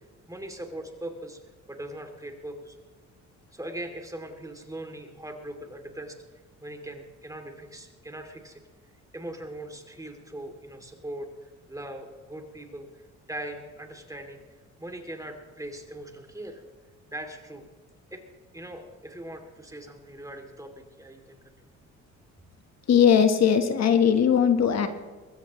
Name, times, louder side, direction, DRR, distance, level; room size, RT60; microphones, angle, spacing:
voice 1, 0.3-1.4 1.7-2.8 3.5-6.2 6.6-8.6 9.1-13.0 13.3-14.4 14.8-16.6 17.1-17.6 18.1-18.2 18.5-21.7, right 1 dB, 10° right, 4 dB, 2.7 m, -40 dB
voice 2, 22.9-24.9, left 8 dB, 60° left, 7 dB, 1.4 m, -19 dB
21.5 x 16.0 x 3.1 m, 1.4 s
cardioid pair, 90°, 30 cm